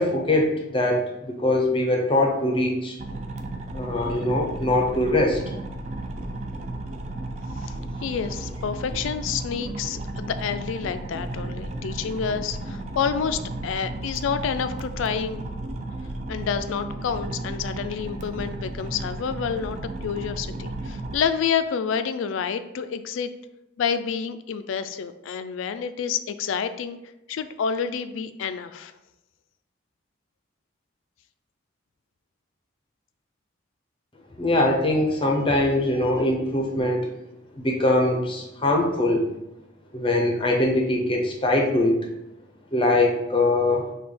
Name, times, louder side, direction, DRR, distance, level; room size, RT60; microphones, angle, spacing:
voice 1, 0.0-3.0 3.7-5.4 34.4-37.0 37.6-39.3 39.9-42.0 42.7-43.9, left 1 dB, 25° left, 1 dB, 0.5 m, -22 dB
sound 1, 3.0-21.2, right 2 dB, 35° right, 0.3 m, -34 dB
voice 2, 8.0-15.4 16.3-23.3 23.8-27.0 27.3-28.9, left 7 dB, 80° left, 11 dB, 0.3 m, -28 dB
6.0 x 2.3 x 3.2 m, 0.91 s
head